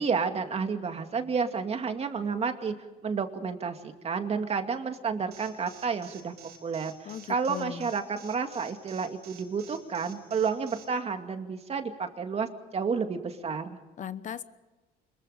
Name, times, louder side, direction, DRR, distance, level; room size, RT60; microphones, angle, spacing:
voice 1, 0.0-2.7 3.0-6.3 6.6-12.5 12.7-13.8, right 5 dB, 35° right, 6 dB, 2.3 m, -31 dB
Alarm, 5.3-10.8, right 10 dB, 75° right, 5.1 m, -50 dB
voice 2, 7.0-7.9 14.0-14.4, left 9 dB, 50° left, 13 dB, 1.0 m, -38 dB
25.5 x 22.5 x 5.1 m, 1.2 s
cardioid pair, 110°, 17 cm